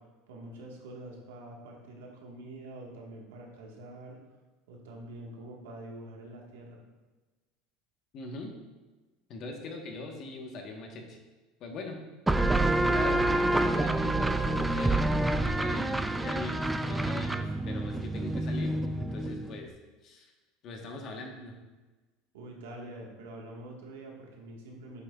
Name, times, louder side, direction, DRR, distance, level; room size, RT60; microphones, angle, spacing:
voice 1, 0.3-4.2 4.7-6.8 22.3-25.0, right 1 dB, 85° right, -1 dB, 1.5 m, -45 dB
voice 2, 8.1-8.5 9.3-11.2 11.6-12.0 12.8-19.7 20.0-20.3 20.6-21.5, left 2 dB, 50° left, 2 dB, 1.2 m, -41 dB
sound 1, 12.3-19.6, right 2 dB, 10° right, 0.4 m, -28 dB
7.8 x 6.2 x 2.4 m, 1.2 s
supercardioid pair, 110°, 0 cm